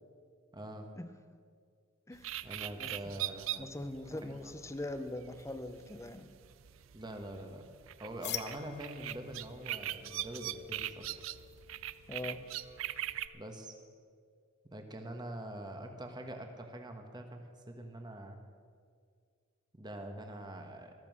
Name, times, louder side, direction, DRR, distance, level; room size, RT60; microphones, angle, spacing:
voice 1, 0.5-0.9 2.4-3.7 4.1-4.5 6.9-7.6 8.0-11.1 13.3-13.7 14.6-18.4 19.7-20.9, right 1 dB, 20° right, 4 dB, 1.3 m, -44 dB
voice 2, 2.1-2.4 2.8-3.1 3.6-6.3 12.1-12.5, left 1 dB, 15° left, 10 dB, 0.7 m, -42 dB
sound 1, 2.1-13.3, right 13 dB, 80° right, 0.5 m, -42 dB
sound 2, 8.2-13.8, left 11 dB, 55° left, 0.7 m, -48 dB
14.0 x 13.5 x 6.2 m, 2.1 s
head